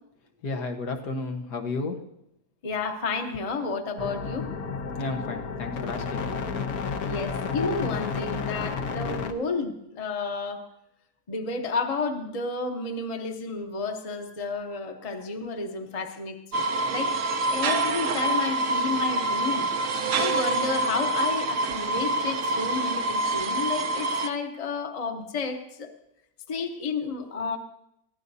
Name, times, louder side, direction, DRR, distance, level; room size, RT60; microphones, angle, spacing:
voice 1, 0.4-2.0 5.0-6.4, left 3 dB, 90° left, 3 dB, 1.9 m, -32 dB
voice 2, 2.6-4.4 7.0-10.6 11.3-17.1 17.5-19.7 20.1-25.9 26.5-27.6, left 4 dB, 30° left, 4 dB, 0.9 m, -31 dB
sound 1, 4.0-9.3, left 5 dB, 70° left, 1.4 m, -31 dB
sound 2, 16.5-24.3, right 2 dB, 60° right, 0.9 m, -26 dB
21.5 x 15.5 x 2.7 m, 0.82 s
omnidirectional pair, 1.7 m